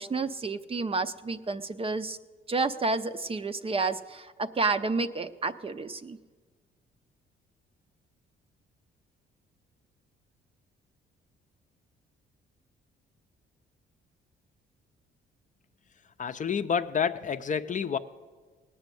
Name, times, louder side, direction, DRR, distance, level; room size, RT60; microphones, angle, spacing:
voice 1, 0.0-2.2 2.5-6.2, right 3 dB, 30° right, 11 dB, 0.6 m, -30 dB
voice 2, 16.2-18.0, left 7 dB, 40° left, 10 dB, 0.6 m, -29 dB
18.5 x 6.2 x 9.1 m, 1.5 s
cardioid pair, 90°, 20 cm